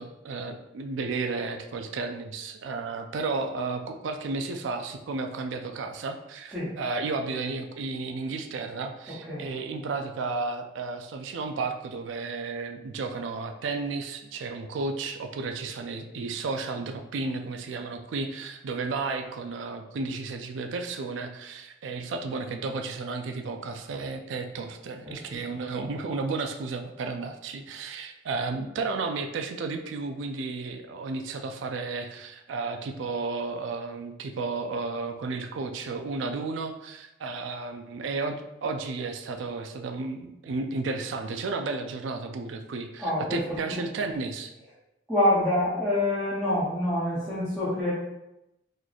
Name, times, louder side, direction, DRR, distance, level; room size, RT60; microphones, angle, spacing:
voice 1, 0.0-44.5, right 3 dB, 85° right, 6 dB, 0.4 m, -33 dB
voice 2, 25.0-25.4 43.0-43.8 45.1-47.9, left 1 dB, 5° right, -12 dB, 0.9 m, -26 dB
3.1 x 2.3 x 3.9 m, 0.90 s
head